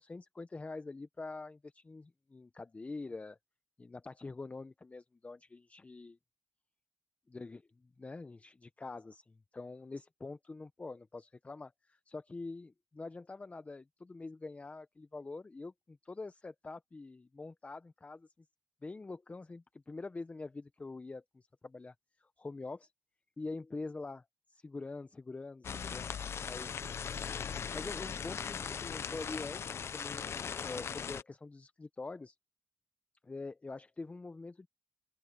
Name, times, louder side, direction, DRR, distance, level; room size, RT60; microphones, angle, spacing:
voice 1, 0.0-3.4 3.8-6.2 7.3-18.3 18.8-22.9 23.4-26.1 26.4-26.8 27.5-32.4 33.2-34.7, left 3 dB, 25° left, 1.0 m, -45 dB
sound 1, 25.6-31.2, left 7 dB, 55° left, 1.0 m, -39 dB
open air
cardioid pair, 70°, 5 cm